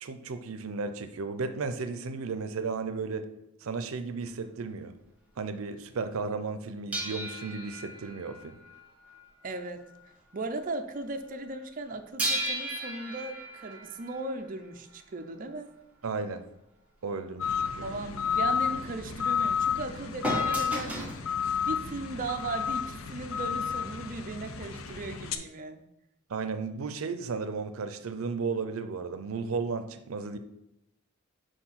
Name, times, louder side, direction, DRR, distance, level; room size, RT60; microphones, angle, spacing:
voice 1, 0.0-3.3 3.6-4.9 5.4-8.6 16.0-16.4 17.0-17.9 26.3-30.4, right 4 dB, 90° right, 10 dB, 0.5 m, -34 dB
sound 1, 6.9-10.1 10.3-10.6 12.2-14.9 20.2-21.2 22.2-22.3, right 1 dB, 5° right, 1.2 m, -35 dB
voice 2, 9.4-9.8 10.3-15.7 17.8-21.1 21.6-25.8, right 2 dB, 40° right, 6 dB, 0.5 m, -37 dB
sound 2, 17.4-25.4, left 7 dB, 80° left, 0.6 m, -31 dB
4.9 x 4.4 x 5.6 m, 0.85 s
head